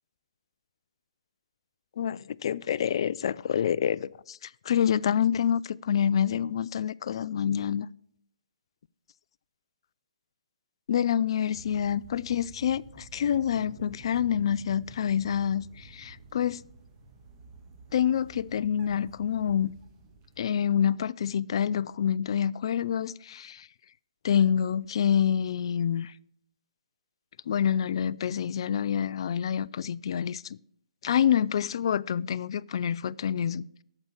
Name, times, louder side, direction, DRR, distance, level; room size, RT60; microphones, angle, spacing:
voice 1, 2.0-7.9 10.9-16.6 17.9-19.7 20.4-23.7 24.2-26.1 27.5-30.6 31.0-33.8, left 9 dB, 55° left, 0.3 m, -27 dB
sound 1, 11.5-20.4, right 2 dB, 30° right, 1.7 m, -50 dB
8.9 x 6.9 x 7.7 m
hypercardioid pair, 140°, 3 cm